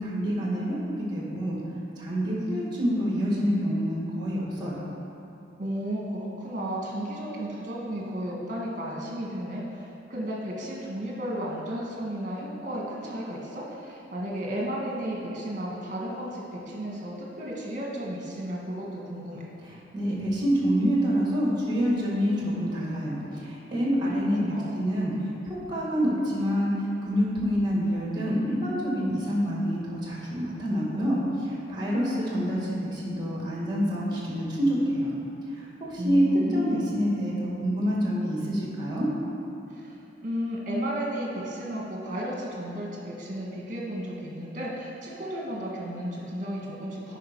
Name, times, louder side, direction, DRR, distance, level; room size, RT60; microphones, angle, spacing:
voice 1, 0.0-1.6 2.0-4.8 19.6-35.2 35.9-36.3 36.5-39.1, equal, 25° right, -5 dB, 1.8 m, -27 dB
voice 2, 5.6-19.4 24.1-24.8 36.0-37.0 39.7-39.9 40.2-47.2, equal, 45° right, -3 dB, 1.6 m, -33 dB
10.0 x 5.1 x 4.6 m, 2.9 s
head